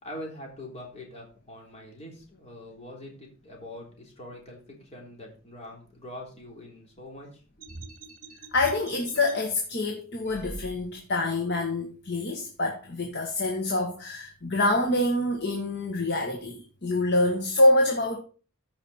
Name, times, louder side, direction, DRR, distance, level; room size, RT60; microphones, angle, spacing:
voice 1, 0.0-7.7, left 1 dB, 35° left, 3.5 m, -43 dB
sound 1, 7.6-9.3 10.2-11.2, right 2 dB, 45° right, 2.1 m, -43 dB
voice 2, 8.5-18.2, left 2 dB, 60° left, 1.7 m, -26 dB
14.5 x 5.8 x 4.3 m
head